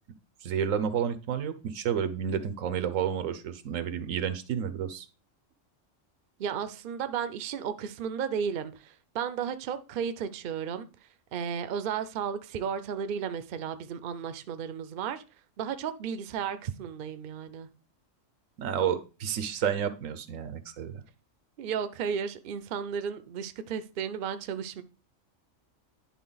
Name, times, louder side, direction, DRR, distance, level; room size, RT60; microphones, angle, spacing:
voice 1, 0.4-5.1 18.6-21.0, right 8 dB, 90° right, 1.2 m, -30 dB
voice 2, 6.4-10.9 11.3-15.2 15.6-17.7 21.6-24.8, right 7 dB, 55° right, 0.7 m, -34 dB
10.5 x 3.9 x 3.9 m
omnidirectional pair, 1.3 m